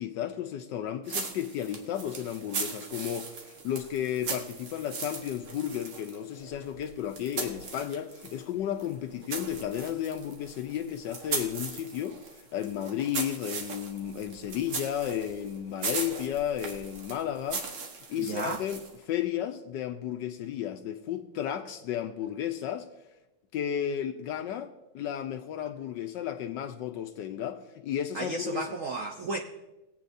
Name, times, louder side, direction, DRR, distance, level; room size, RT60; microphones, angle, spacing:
voice 1, 0.0-17.6 18.1-22.9 23.5-28.7, left 10 dB, 75° left, 1.1 m, -33 dB
sound 1, 1.1-8.4 8.8-19.0, right 4 dB, 90° right, 2.2 m, -38 dB
voice 2, 18.2-18.6 28.1-29.4, right 3 dB, 70° right, 0.7 m, -33 dB
20.0 x 8.3 x 2.6 m
omnidirectional pair, 2.3 m